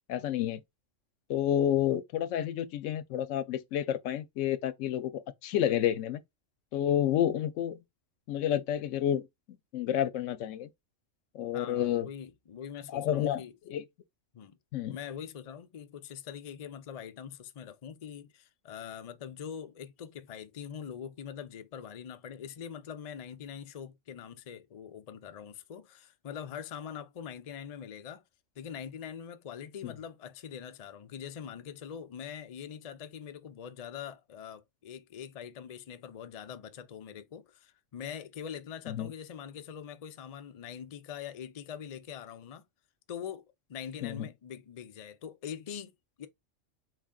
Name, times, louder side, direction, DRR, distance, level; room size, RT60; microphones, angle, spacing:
voice 1, 0.1-0.6 1.3-6.2 6.7-7.8 8.3-9.3 9.7-10.7 11.3-12.1 12.9-13.8 14.7-15.0 29.8-29.9 38.9-39.1 44.0-44.3, left 11 dB, 80° left, 0.9 m, -30 dB
voice 2, 11.5-13.5 14.3-14.6 14.9-28.2 28.6-42.6 43.1-43.4 43.7-46.3, left 8 dB, 45° left, 0.5 m, -43 dB
4.8 x 3.7 x 2.2 m
omnidirectional pair, 1.3 m